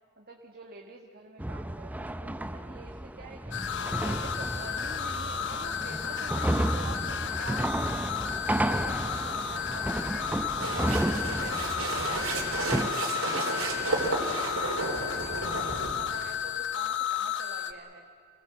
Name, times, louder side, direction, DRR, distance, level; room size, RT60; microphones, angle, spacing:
voice 1, 0.2-3.6 3.9-8.2 8.6-14.6 14.9-18.1, right 3 dB, 45° right, 1 dB, 1.6 m, -46 dB
sound 1, 1.4-12.9, right 1 dB, 5° right, 0.6 m, -32 dB
sound 2, 3.5-17.7, left 8 dB, 55° left, 1.1 m, -33 dB
sound 3, 10.6-16.0, right 3 dB, 70° right, 3.8 m, -32 dB
27.5 x 18.5 x 7.6 m, 2.6 s
head